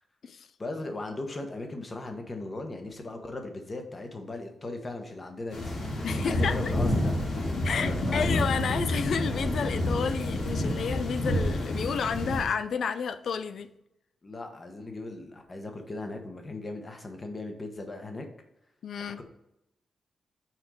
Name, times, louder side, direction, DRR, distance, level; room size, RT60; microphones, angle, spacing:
voice 1, 0.6-7.2 7.7-8.4 14.2-18.3 19.2-19.3, left 2 dB, 25° left, 4 dB, 1.1 m, -38 dB
sound 1, 5.5-12.4, left 1 dB, 80° left, 1.9 m, -29 dB
voice 2, 6.0-6.7 7.6-13.7 18.8-19.2, left 6 dB, 65° left, 11 dB, 0.5 m, -31 dB
5.8 x 4.5 x 4.9 m, 0.84 s
wide cardioid pair, 140°, 0 cm